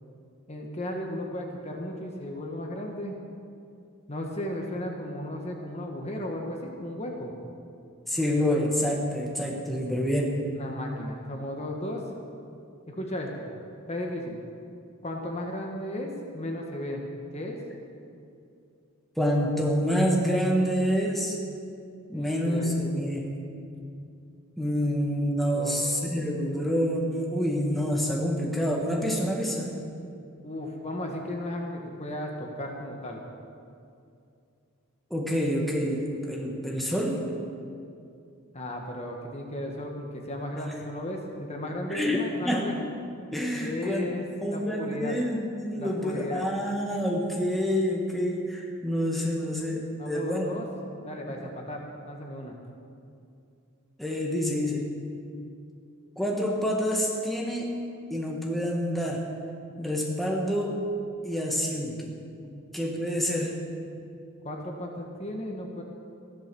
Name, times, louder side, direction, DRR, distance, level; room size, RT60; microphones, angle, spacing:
voice 1, 0.5-3.1 4.1-7.3 10.5-12.0 12.9-13.5 13.9-14.4 15.0-17.0 17.3-17.6 22.1-22.7 24.9-25.0 25.5-25.8 30.4-33.2 38.5-42.8 43.6-45.2 45.8-46.4 50.0-50.7 51.0-52.6 64.4-65.8, left 1 dB, 30° left, 1 dB, 1.4 m, -35 dB
voice 2, 8.1-10.4 19.2-21.4 22.1-23.3 24.6-29.8 35.1-37.3 41.9-42.6 43.3-44.1 44.3-50.5 54.0-54.9 56.2-57.8 58.1-59.2 59.8-60.9 61.2-62.1 62.7-63.6, equal, ahead, -2 dB, 1.5 m, -27 dB
15.0 x 11.5 x 6.9 m, 2.5 s
head